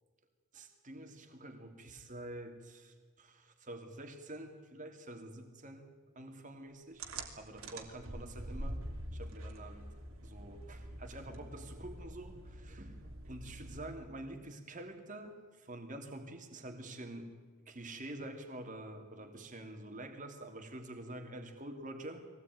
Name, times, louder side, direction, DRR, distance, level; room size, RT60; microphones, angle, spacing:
voice 1, 0.5-5.9 6.1-7.1 7.4-8.8 9.1-9.9 10.2-13.0 13.2-17.3 17.7-22.2, right 1 dB, 35° right, 5 dB, 2.9 m, -47 dB
sound 1, 7.0-14.2, right 1 dB, 75° right, 2.9 m, -45 dB
23.0 x 17.5 x 9.5 m, 1.5 s
head